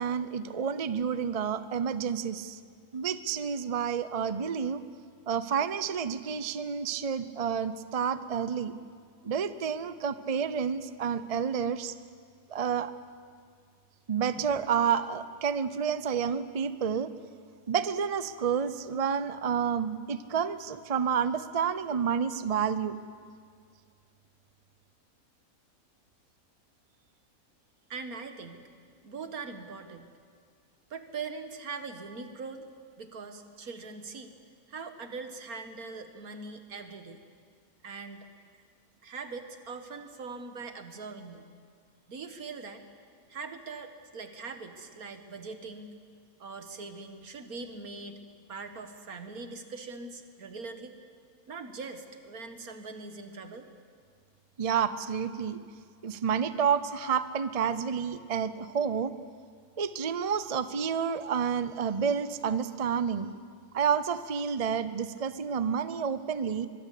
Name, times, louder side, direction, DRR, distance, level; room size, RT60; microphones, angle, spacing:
voice 1, 0.0-2.6 2.9-4.8 5.3-8.7 9.2-11.9 12.5-12.9 14.1-17.1 17.7-23.0 54.6-55.6 56.0-59.1 59.8-63.3 63.7-66.7, right 7 dB, 35° right, 13 dB, 0.7 m, -29 dB
voice 2, 27.9-28.6 29.0-30.1 30.9-32.7 33.0-34.3 34.7-37.2 37.8-38.3 39.0-41.5 42.1-42.8 43.3-45.9 46.4-48.2 48.5-50.9 51.5-53.7, right 4 dB, 80° right, 8 dB, 2.1 m, -41 dB
24.0 x 22.0 x 8.5 m, 2.1 s
omnidirectional pair, 1.5 m